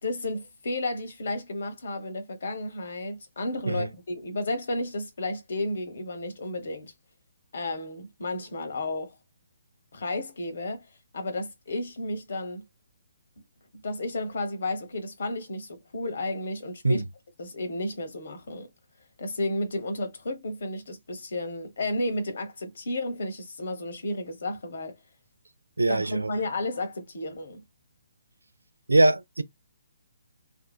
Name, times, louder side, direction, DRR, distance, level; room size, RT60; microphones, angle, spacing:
voice 1, 0.0-6.9 7.5-9.2 9.9-10.9 11.1-12.6 13.8-17.0 17.4-18.7 19.2-24.9 25.9-27.6, left 1 dB, 60° left, 0.9 m, -32 dB
voice 2, 25.8-26.3 28.9-29.4, right 2 dB, 85° right, 0.4 m, -22 dB
2.7 x 2.3 x 2.2 m
figure-of-eight pair, 135°, 0 cm